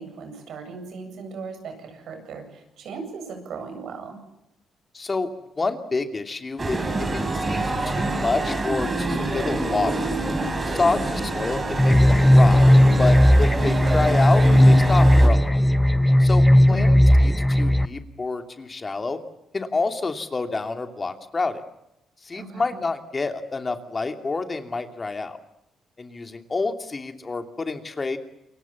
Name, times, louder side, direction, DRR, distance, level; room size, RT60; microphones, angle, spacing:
voice 1, 0.0-4.2 10.9-11.2 16.6-17.1 22.3-22.6, right 4 dB, 70° right, 6 dB, 8.0 m, -37 dB
voice 2, 4.9-5.3 5.6-10.0 10.7-12.7 13.0-15.5 16.2-19.2 19.5-21.6 22.2-25.4 26.0-28.2, left 3 dB, 30° left, 7 dB, 2.8 m, -28 dB
sound 1, 6.6-15.3, right 2 dB, 25° right, 5.9 m, -27 dB
sound 2, 11.8-17.9, left 1 dB, 5° left, 1.2 m, -16 dB
28.0 x 23.0 x 7.3 m, 0.85 s
cardioid pair, 90°, 0 cm